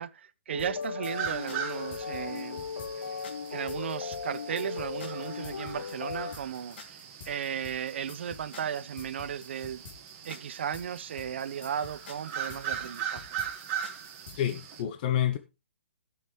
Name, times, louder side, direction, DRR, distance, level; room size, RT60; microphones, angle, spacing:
voice 1, 0.0-2.6 2.9-3.2 3.5-9.8 10.2-13.4, right 8 dB, 60° right, 0.8 m, -36 dB
sound 1, 0.5-6.3, left 6 dB, 80° left, 0.6 m, -37 dB
sound 2, 0.6-14.5, left 5 dB, 55° left, 2.6 m, -48 dB
sound 3, 1.0-14.8, right 8 dB, 30° right, 1.7 m, -40 dB
voice 2, 14.3-15.4, left 11 dB, 35° left, 0.8 m, -28 dB
17.0 x 6.5 x 3.2 m
hypercardioid pair, 160°, 7 cm